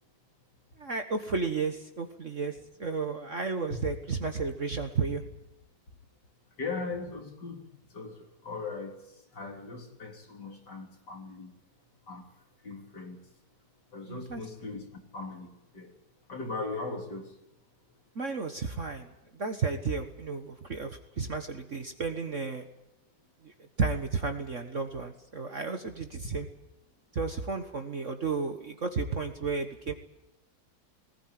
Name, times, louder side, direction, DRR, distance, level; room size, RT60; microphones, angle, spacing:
voice 1, 0.8-5.2 14.1-14.4 18.1-22.7 23.4-26.5 27.1-29.9, right 4 dB, 40° right, 6 dB, 1.5 m, -33 dB
voice 2, 6.6-7.7 7.9-11.5 12.1-12.3 12.6-13.3 13.9-16.0 16.3-17.4, left 3 dB, 55° left, 2 dB, 3.9 m, -39 dB
20.0 x 19.0 x 9.4 m, 0.87 s
omnidirectional pair, 2.2 m